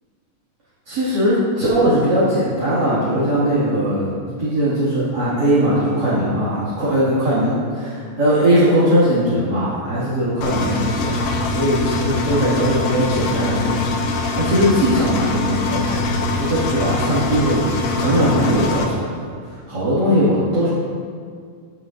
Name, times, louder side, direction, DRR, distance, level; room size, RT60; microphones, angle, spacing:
voice 1, 0.9-20.7, equal, 35° right, -12 dB, 2.7 m, -20 dB
Engine, 10.4-18.8, left 3 dB, 80° left, 2.4 m, -23 dB
15.5 x 7.7 x 2.7 m, 2.1 s
omnidirectional pair, 3.6 m